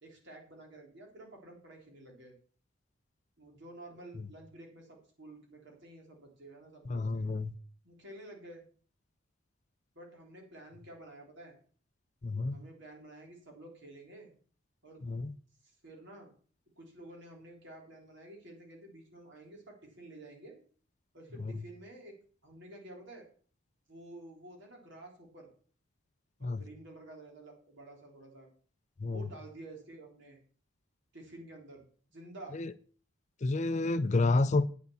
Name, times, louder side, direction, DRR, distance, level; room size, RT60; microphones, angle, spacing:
voice 1, 0.0-2.4 3.4-7.3 7.8-8.6 9.9-11.5 12.5-14.3 14.8-15.1 15.6-16.3 16.8-20.6 21.1-22.2 22.4-23.3 23.9-25.5 26.4-28.5 29.1-30.4 31.1-31.8 32.1-32.6, right 1 dB, 60° right, 3.6 m, -51 dB
voice 2, 6.9-7.5 12.2-12.6 15.1-15.3 26.4-26.6 29.0-29.2 32.5-32.7 33.4-34.7, left 3 dB, 35° left, 0.5 m, -29 dB
9.2 x 6.6 x 7.0 m
head